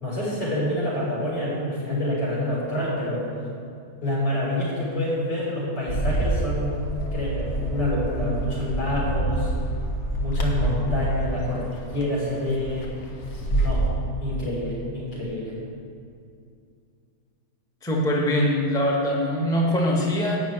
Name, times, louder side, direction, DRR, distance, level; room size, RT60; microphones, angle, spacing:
voice 1, 0.0-3.3 4.0-6.8 7.1-9.5 10.2-12.9 13.5-13.8 14.2-15.6, left 1 dB, 75° left, -6 dB, 4.5 m, -27 dB
Bird, 5.9-13.9, right 1 dB, 45° left, 1.5 m, -27 dB
voice 2, 17.8-20.4, equal, ahead, -3 dB, 1.3 m, -23 dB
11.5 x 6.1 x 8.8 m, 2.4 s
omnidirectional pair, 1.9 m